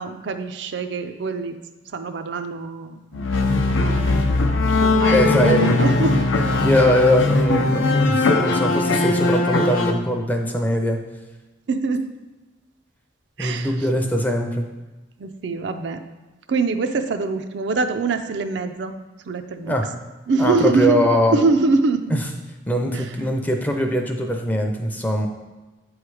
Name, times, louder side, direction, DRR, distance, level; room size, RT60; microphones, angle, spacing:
voice 1, 0.0-1.6 1.9-4.2 4.8-6.2 11.7-12.0 13.4-13.7 15.2-16.0 16.5-18.9 19.3-19.7 20.3-22.2 22.9-23.0, right 3 dB, 65° right, 8 dB, 0.4 m, -24 dB
sound 1, 3.1-9.9, left 2 dB, 90° left, 0.6 m, -19 dB
voice 2, 5.1-5.7 6.6-11.0 13.4-14.6 19.7-19.9 20.4-21.4 22.1-22.2 22.7-25.3, equal, 10° left, 3 dB, 0.5 m, -21 dB
8.3 x 3.2 x 4.8 m, 1.2 s
head